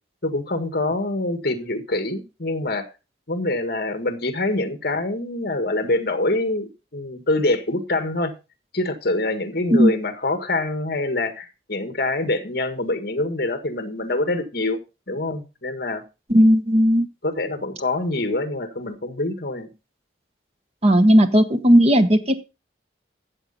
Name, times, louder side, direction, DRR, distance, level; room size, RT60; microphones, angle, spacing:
voice 1, 0.2-2.8 3.3-8.3 8.7-14.8 15.1-16.0 17.2-19.7, left 2 dB, 55° left, 8 dB, 1.8 m, -25 dB
voice 2, 16.3-17.1 20.8-22.4, equal, 35° right, 8 dB, 1.1 m, -15 dB
13.5 x 7.8 x 4.1 m, 0.30 s
head